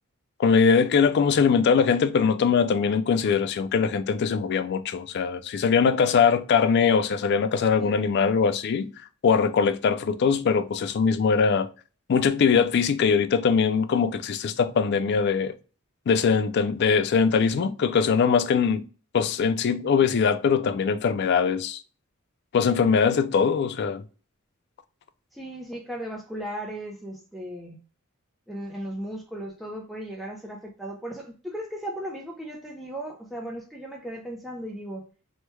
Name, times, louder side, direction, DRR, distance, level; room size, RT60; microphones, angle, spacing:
voice 1, 0.4-8.9 9.2-11.7 12.1-15.5 16.1-18.8 19.1-21.8 22.5-24.0, left 6 dB, 55° left, 0.3 m, -22 dB
voice 2, 7.8-8.2 25.3-27.8 28.5-35.1, right 1 dB, ahead, 0.5 m, -36 dB
3.2 x 2.2 x 3.0 m
head